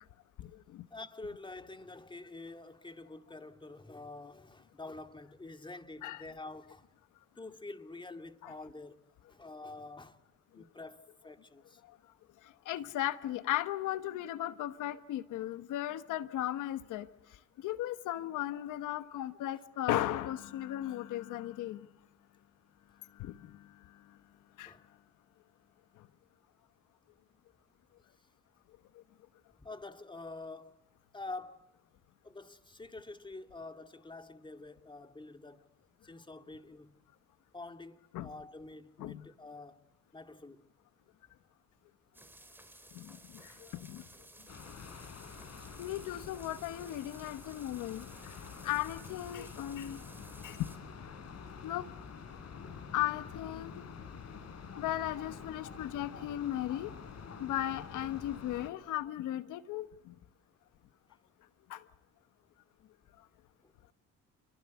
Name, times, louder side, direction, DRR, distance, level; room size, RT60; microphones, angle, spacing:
voice 1, 0.4-0.9 6.0-6.2 8.4-8.5 10.6-10.7 12.4-17.1 17.6-21.9 23.1-24.0 24.6-24.7 38.1-38.3 39.0-39.3 42.9-44.0 45.8-50.0 50.4-50.7 51.6-51.8 52.9-53.8 54.8-56.9 57.4-60.1 61.7-61.8, left 13 dB, 90° left, 1.1 m, -36 dB
voice 2, 0.9-6.9 7.4-9.0 9.3-10.2 10.5-11.8 24.7-24.9 29.6-30.7 31.1-31.7 32.2-35.7 36.0-37.0 37.5-39.8 40.1-40.6 63.6-63.7, left 2 dB, 15° left, 2.2 m, -47 dB
sound 1, 42.1-50.8, right 1 dB, 5° right, 4.7 m, -56 dB
sound 2, 44.5-58.7, left 6 dB, 55° left, 4.6 m, -48 dB
29.5 x 23.5 x 8.3 m
cardioid pair, 90°, 30 cm